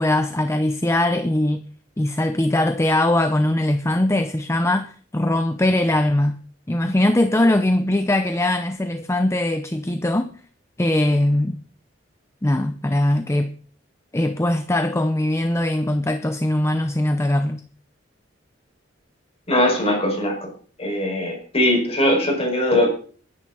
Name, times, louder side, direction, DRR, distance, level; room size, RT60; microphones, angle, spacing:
voice 1, 0.0-1.6 2.0-6.4 6.7-10.3 10.8-11.6 12.4-13.5 14.1-17.6, left 1 dB, 15° left, 0.7 m, -21 dB
voice 2, 19.5-20.5 20.8-22.9, left 1 dB, 35° left, 5.6 m, -20 dB
20.5 x 10.0 x 4.0 m
head